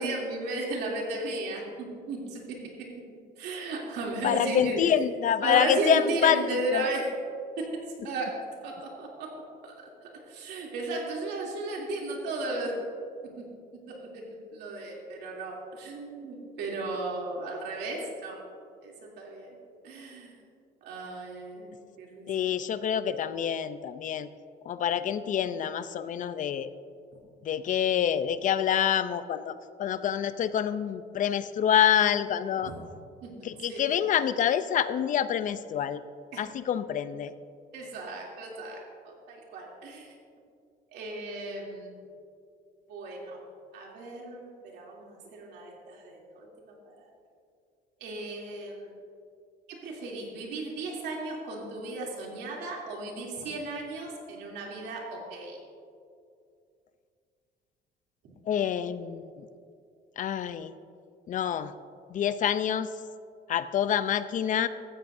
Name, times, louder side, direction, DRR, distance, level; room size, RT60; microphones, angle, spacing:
voice 1, 0.0-2.6 3.4-4.8 5.4-7.0 7.6-8.4 8.6-9.3 9.6-9.7 10.3-12.7 13.4-13.5 13.9-14.2 14.5-18.4 18.8-19.6 19.8-20.3 20.8-22.3 32.6-32.7 33.2-33.3 33.7-33.8 36.3-36.4 37.7-38.8 39.0-40.1 40.9-42.0 42.9-43.4 43.7-45.0 45.3-47.1 48.0-48.9 49.7-55.6, right 2 dB, 80° right, -2 dB, 3.0 m, -35 dB
voice 2, 4.2-6.4 6.7-6.9 22.3-24.3 24.6-26.7 27.4-32.7 33.4-36.0 36.4-37.3 58.5-59.4 60.2-60.7 61.3-61.7 62.1-62.9 63.5-64.7, left 9 dB, 50° left, 13 dB, 0.6 m, -27 dB
16.5 x 13.5 x 2.7 m, 2.4 s
cardioid pair, 110°, 17 cm